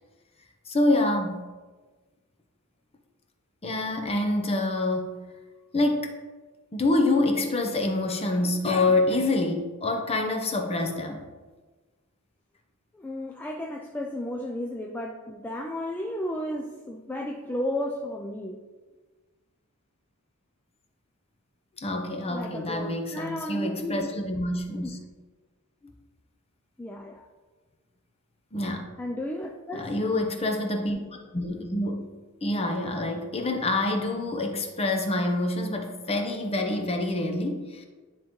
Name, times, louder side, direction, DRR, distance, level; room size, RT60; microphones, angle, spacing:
voice 1, 0.7-1.4 3.6-5.2 5.7-6.1 6.7-11.2 21.8-25.0 28.5-28.8 29.7-31.0 31.3-32.1 32.4-37.8, left 2 dB, 25° left, 3 dB, 0.7 m, -26 dB
voice 2, 12.9-18.6 22.3-24.1 24.8-24.9 26.8-27.3 29.0-29.9, left 1 dB, 10° left, 0 dB, 0.3 m, -33 dB
9.5 x 3.7 x 3.0 m, 1.3 s
head